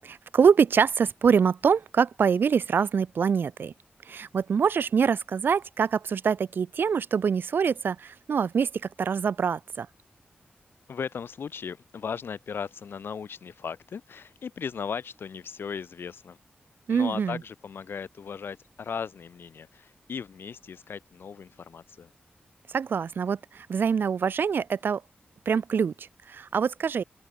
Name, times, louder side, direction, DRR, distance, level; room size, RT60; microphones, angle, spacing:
voice 1, 0.0-3.7 4.1-8.7 9.0-9.9 16.9-17.4 22.7-25.0 25.5-27.0, right 6 dB, 70° right, 0.7 m, -24 dB
voice 2, 10.9-16.4 16.9-22.1, left 6 dB, 85° left, 3.3 m, -37 dB
open air
wide cardioid pair, 180°, 4 cm